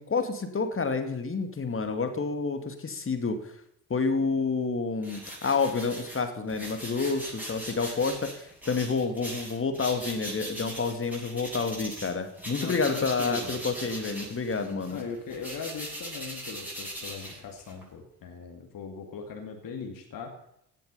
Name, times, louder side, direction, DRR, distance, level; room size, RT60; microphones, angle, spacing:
voice 1, 0.0-3.4 3.9-15.0, left 4 dB, 25° left, 7 dB, 2.3 m, -29 dB
sound 1, 5.0-12.1 12.4-17.8, equal, 5° right, 7.3 m, -40 dB
voice 2, 12.6-13.6 14.9-20.3, left 5 dB, 40° left, 2 dB, 2.5 m, -39 dB
16.5 x 10.5 x 5.5 m, 0.77 s
figure-of-eight pair, 55°, 49 cm